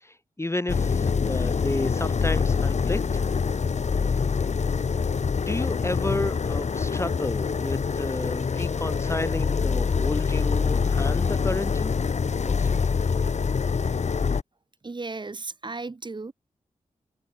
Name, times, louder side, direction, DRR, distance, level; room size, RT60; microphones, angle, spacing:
voice 1, 0.0-3.2 5.4-11.9 12.5-12.8, left 2 dB, 20° left, 0.8 m, -32 dB
sound 1, 0.7-14.4, left 5 dB, 60° left, 0.9 m, -25 dB
voice 2, 14.8-16.3, right 3 dB, 35° right, 0.9 m, -35 dB
cardioid pair, 50°, 14 cm